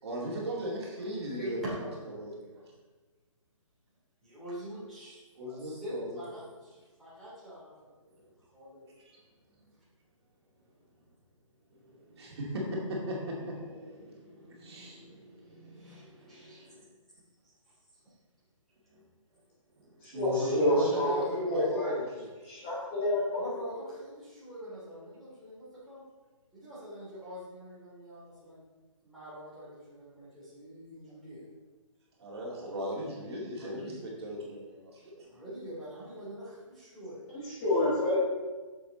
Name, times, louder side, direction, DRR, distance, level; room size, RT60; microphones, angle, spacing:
voice 1, 0.0-1.7 2.2-2.6 5.4-6.2 9.1-9.2 11.9-16.8 18.9-19.0 19.8-22.3 32.2-33.9 34.2-35.3, right 1 dB, 50° right, -4 dB, 2.4 m, -37 dB
voice 2, 1.2-2.6 4.2-7.9 8.2-8.9 15.7-16.8 17.4-18.1 21.3-21.5 23.3-26.0 26.5-28.6 29.0-31.4 33.6-34.1 35.3-37.2, equal, ahead, -12 dB, 2.7 m, -45 dB
voice 3, 20.0-21.9 22.4-23.4 37.3-38.2, left 1 dB, 20° left, -7 dB, 1.7 m, -28 dB
6.9 x 6.9 x 3.9 m, 1.3 s
hypercardioid pair, 165°, 17 cm